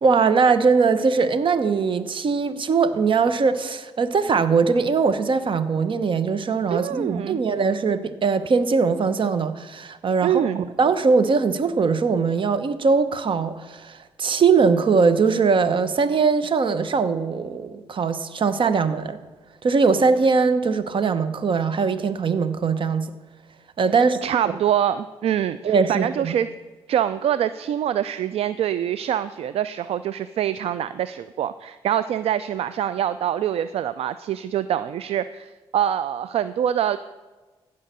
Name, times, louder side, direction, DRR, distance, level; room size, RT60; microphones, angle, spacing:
voice 1, 0.0-19.2 19.6-23.1 23.8-24.2 25.6-26.3, right 5 dB, 50° right, 12 dB, 0.9 m, -21 dB
voice 2, 6.7-7.4 10.2-10.6 24.2-26.5 26.9-37.0, right 10 dB, 70° right, 14 dB, 0.4 m, -25 dB
15.5 x 5.6 x 6.7 m, 1.3 s
cardioid pair, 65°, 11 cm